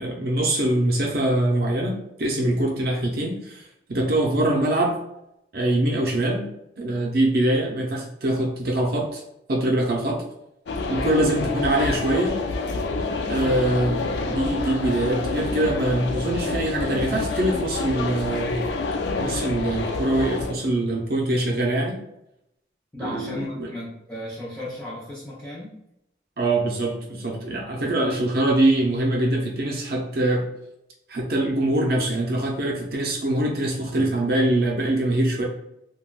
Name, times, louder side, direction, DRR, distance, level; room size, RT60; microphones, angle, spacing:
voice 1, 0.0-5.0 5.5-6.4 6.8-9.2 9.5-10.2 10.9-12.3 13.3-18.5 19.2-22.0 23.0-23.7 26.4-30.4 31.1-35.5, right 1 dB, 55° right, 0 dB, 0.5 m, -23 dB
sound 1, 10.7-20.5, left 3 dB, 75° left, 0.4 m, -28 dB
voice 2, 22.9-25.7, left 1 dB, 10° left, -8 dB, 0.6 m, -35 dB
3.4 x 2.3 x 2.4 m, 0.82 s
head